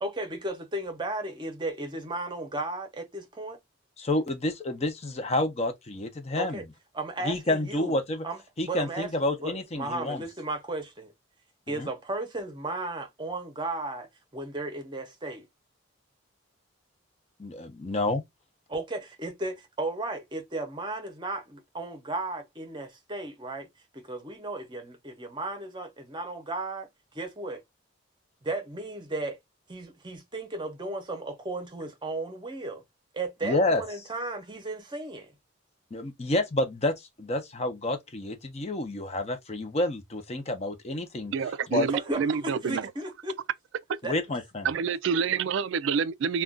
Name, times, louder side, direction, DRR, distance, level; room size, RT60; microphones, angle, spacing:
voice 1, 0.0-3.6 6.3-6.7 6.9-8.0 8.2-9.1 9.4-11.1 11.7-15.5 18.7-23.7 23.9-26.9 27.1-27.6 28.4-29.4 29.7-32.8 33.1-35.3 41.9-43.4 44.0-44.4, right 2 dB, 25° right, 0.7 m, -35 dB
voice 2, 4.0-6.6 7.2-8.2 8.6-10.2 11.8-11.9 17.4-18.2 33.4-33.8 35.9-41.3 41.7-41.9 44.0-44.7, left 2 dB, 30° left, 0.6 m, -29 dB
voice 3, 41.3-42.9 44.6-46.4, right 6 dB, 65° right, 0.3 m, -27 dB
2.4 x 2.2 x 3.5 m
head